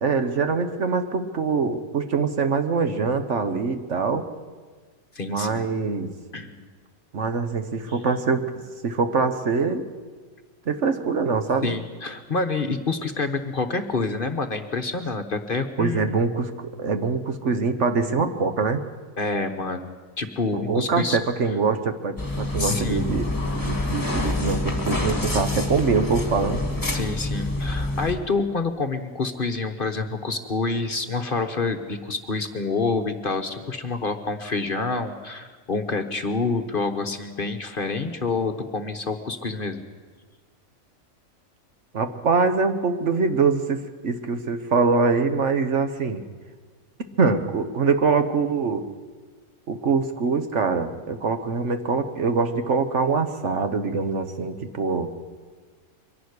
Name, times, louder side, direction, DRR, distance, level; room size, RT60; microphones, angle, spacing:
voice 1, 0.0-4.3 5.3-6.1 7.1-8.5 8.8-9.8 10.7-11.7 15.8-18.8 20.5-23.3 23.6-26.6 41.9-46.2 47.2-48.9 49.7-55.1, right 4 dB, 55° right, 8 dB, 1.4 m, -24 dB
voice 2, 5.1-5.7 6.3-6.7 11.6-16.2 19.2-21.2 22.6-23.0 26.9-39.8, left 3 dB, 40° left, 7 dB, 1.1 m, -27 dB
sound 1, 22.2-28.1, left 1 dB, 15° left, 2.0 m, -27 dB
23.5 x 11.5 x 9.7 m, 1.5 s
omnidirectional pair, 1.5 m